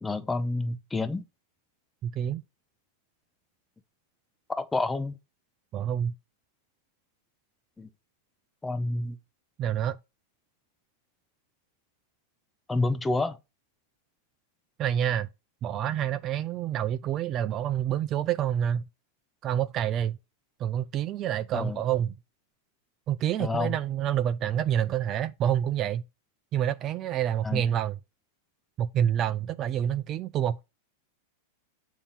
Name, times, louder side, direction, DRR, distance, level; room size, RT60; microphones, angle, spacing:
voice 1, 0.0-1.2 4.5-5.2 7.8-7.9 8.6-9.2 12.7-13.4 21.5-21.8 23.4-23.8 27.4-27.6, left 2 dB, 10° left, 0.7 m, -29 dB
voice 2, 2.0-2.4 5.7-6.1 9.6-10.0 14.8-15.3 15.6-18.8 19.4-20.2 20.6-22.1 23.1-26.0 26.5-28.0 28.8-30.6, right 10 dB, 35° right, 0.3 m, -27 dB
7.1 x 2.8 x 5.4 m
hypercardioid pair, 125°, 0 cm